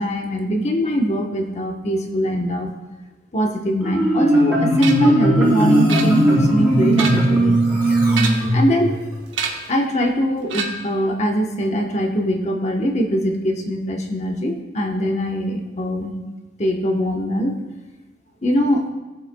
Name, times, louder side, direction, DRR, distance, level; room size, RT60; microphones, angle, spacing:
voice 1, 0.0-2.7 3.3-7.6 8.5-9.0 9.7-16.1 16.6-17.5 18.4-18.9, equal, 35° left, 3 dB, 1.0 m, -22 dB
Marimba xylophone, 3.8-8.9, right 1 dB, 10° right, 2.7 m, -17 dB
sound 1, 4.8-5.2 5.9-6.5 6.8-7.4 8.1-8.6 9.3-9.8 10.5-11.0, right 5 dB, 80° right, 1.0 m, -28 dB
17.5 x 7.2 x 2.2 m, 1.1 s
head